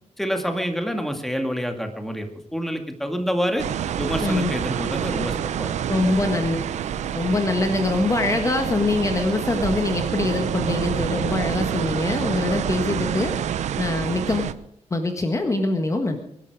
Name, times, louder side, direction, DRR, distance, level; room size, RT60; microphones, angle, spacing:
voice 1, 0.2-3.7 4.0-5.7 6.2-6.3, equal, ahead, 5 dB, 2.1 m, -27 dB
sound 1, 3.6-14.5, right 9 dB, 85° right, 0.8 m, -27 dB
voice 2, 4.2-4.5 5.9-6.6 7.1-13.3 13.8-14.6 14.9-16.2, left 2 dB, 25° left, 5 dB, 1.6 m, -23 dB
23.5 x 11.5 x 4.9 m, 0.73 s
wide cardioid pair, 120°, 12 cm